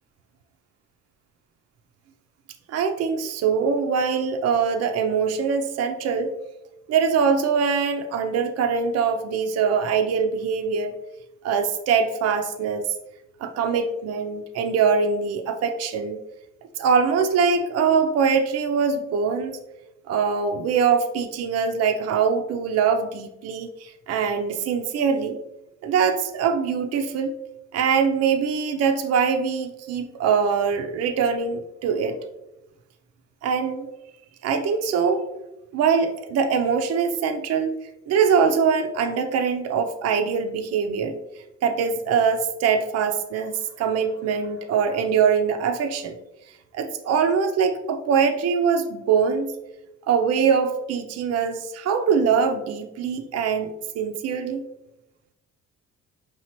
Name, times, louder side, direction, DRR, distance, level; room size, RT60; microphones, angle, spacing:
voice 1, 2.7-6.3 6.9-10.9 11.4-12.8 13.4-16.2 16.8-19.6 20.1-25.4 25.8-27.3 27.7-32.2 33.4-33.9 34.4-35.3 35.7-37.7 38.1-41.2 41.6-46.2 46.7-49.5 50.1-54.6, right 6 dB, 60° right, 6 dB, 0.4 m, -23 dB
4.7 x 3.0 x 2.9 m, 0.95 s
cardioid pair, 90°, 30 cm